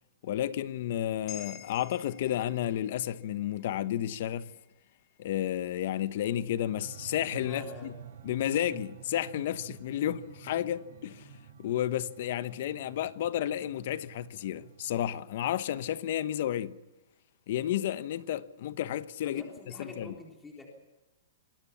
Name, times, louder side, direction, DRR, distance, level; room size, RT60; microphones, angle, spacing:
voice 1, 0.2-4.5 5.2-7.9 8.2-11.3 11.6-16.8 17.5-20.2, left 11 dB, 50° left, 1.1 m, -32 dB
sound 1, 1.3-5.8 6.2-6.3, left 9 dB, 25° left, 4.6 m, -51 dB
sound 2, 6.8-15.2, right 9 dB, 60° right, 4.6 m, -50 dB
voice 2, 7.4-7.9 19.2-20.7, left 1 dB, 10° left, 3.8 m, -45 dB
26.0 x 20.0 x 7.2 m
hypercardioid pair, 160°, 0 cm